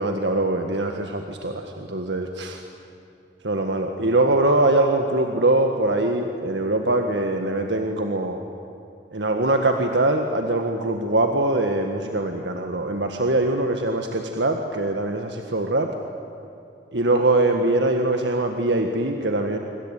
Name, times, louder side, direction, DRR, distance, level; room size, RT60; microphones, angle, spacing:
voice 1, 0.0-2.6 3.4-8.4 9.1-15.9 16.9-19.6, right 2 dB, 85° right, 4 dB, 1.8 m, -22 dB
26.5 x 25.0 x 9.1 m, 2.7 s
head